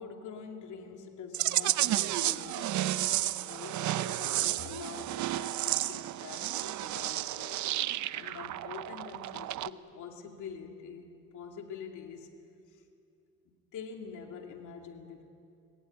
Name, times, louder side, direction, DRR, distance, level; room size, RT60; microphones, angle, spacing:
voice 1, 0.0-12.3 12.7-12.8 13.4-15.2, left 6 dB, 80° left, 3 dB, 2.6 m, -46 dB
sound 1, 1.3-9.7, right 14 dB, 75° right, 0.7 m, -32 dB
25.0 x 19.5 x 9.4 m, 2.6 s
cardioid pair, 90°, 30 cm